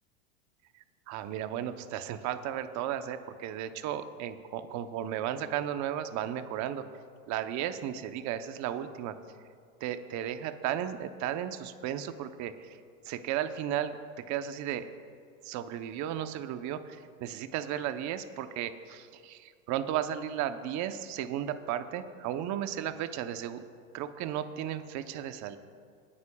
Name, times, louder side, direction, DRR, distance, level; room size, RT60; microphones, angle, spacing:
voice 1, 1.1-6.8 7.3-9.1 9.8-12.8 13.0-14.0 14.3-14.9 15.4-23.6 23.9-25.6, right 10 dB, 45° right, 10 dB, 0.8 m, -34 dB
26.5 x 9.6 x 2.3 m, 2.2 s
hypercardioid pair, 110°, 41 cm